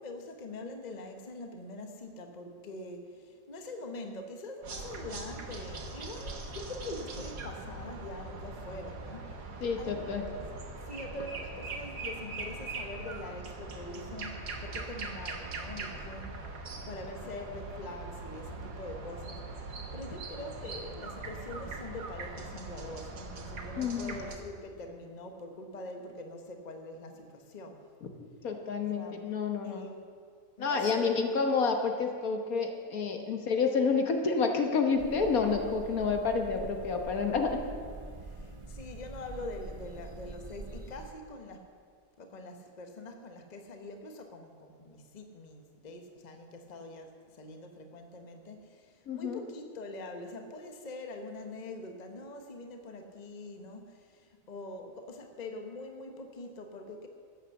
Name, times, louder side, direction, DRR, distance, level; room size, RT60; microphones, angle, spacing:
voice 1, 0.0-9.5 9.8-10.5 10.9-27.9 28.8-29.2 29.6-30.1 30.6-31.2 38.4-41.7 42.2-57.1, left 2 dB, 30° left, 5 dB, 1.1 m, -44 dB
sound 1, 4.6-24.4, right 3 dB, 85° right, 2.0 m, -41 dB
voice 2, 9.6-10.2 23.8-24.1 28.0-28.1 28.4-29.9 30.6-37.6 49.1-49.4, left 5 dB, 65° left, 4 dB, 1.6 m, -29 dB
sound 2, 35.0-41.1, right 3 dB, 40° right, 0.4 m, -45 dB
14.0 x 9.0 x 7.0 m, 2.1 s
omnidirectional pair, 1.7 m